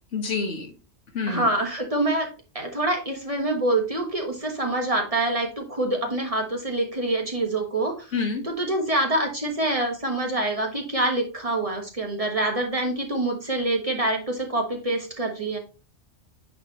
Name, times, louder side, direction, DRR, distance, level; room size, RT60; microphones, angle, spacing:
voice 1, 0.1-0.7 1.1-1.5 8.1-8.4, left 4 dB, 80° left, 4 dB, 1.7 m, -27 dB
voice 2, 1.3-2.3 2.5-8.1 8.4-15.6, right 2 dB, 30° right, 2 dB, 1.4 m, -26 dB
8.7 x 4.3 x 3.0 m, 0.33 s
omnidirectional pair, 1.2 m